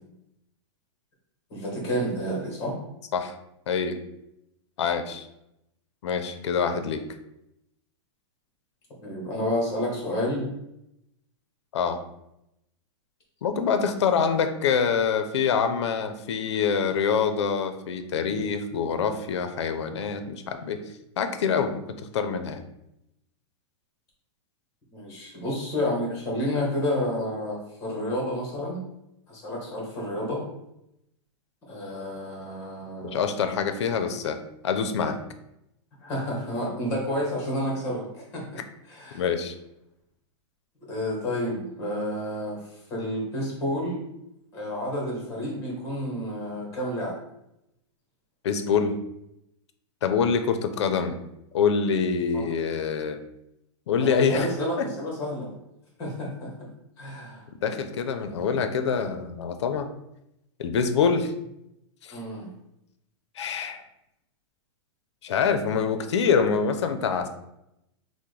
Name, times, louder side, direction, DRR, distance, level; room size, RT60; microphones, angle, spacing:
voice 1, 1.5-2.8 9.0-10.5 14.2-14.3 24.9-28.8 29.3-30.4 31.7-33.2 36.0-39.2 40.9-42.6 42.9-44.0 44.5-47.2 52.3-52.5 54.0-55.5 56.0-56.5 57.0-57.4 62.1-62.5, equal, 15° left, -2 dB, 1.0 m, -30 dB
voice 2, 4.8-5.3 6.0-7.0 11.7-12.0 13.4-20.8 21.2-21.8 22.1-22.6 33.1-34.4 34.6-35.2 39.1-39.5 48.4-49.0 50.0-51.2 51.5-53.2 53.9-54.5 54.8-54.9 57.6-59.9 60.6-61.3 62.0-62.1 63.4-63.8 65.2-67.3, left 6 dB, 65° left, 8 dB, 0.5 m, -25 dB
5.8 x 2.1 x 3.2 m, 0.84 s
supercardioid pair, 180°, 15 cm